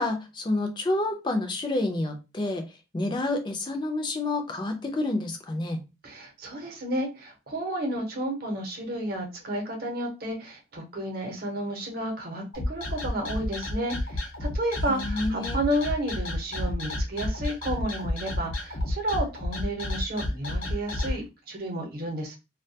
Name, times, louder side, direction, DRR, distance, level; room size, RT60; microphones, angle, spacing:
voice 1, 0.0-2.6 2.9-5.8 14.9-15.6, left 2 dB, 25° left, 5 dB, 0.4 m, -29 dB
voice 2, 6.0-22.3, right 1 dB, 50° right, 1 dB, 0.8 m, -31 dB
sound 1, 12.5-21.1, left 1 dB, 90° left, 0.8 m, -30 dB
2.3 x 2.2 x 2.6 m, 0.27 s
head